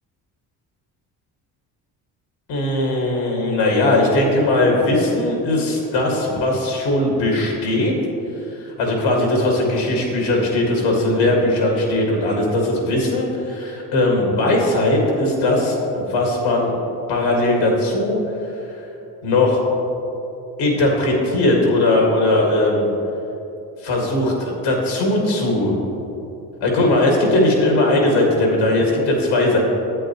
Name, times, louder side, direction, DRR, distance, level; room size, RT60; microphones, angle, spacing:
voice 1, 2.5-7.9 8.6-16.7 17.1-18.2 19.2-19.6 20.6-22.9 23.8-25.8 26.6-29.6, left 2 dB, 75° left, -1 dB, 2.1 m, -19 dB
11.0 x 8.5 x 3.1 m, 2.9 s
hypercardioid pair, 50°, 46 cm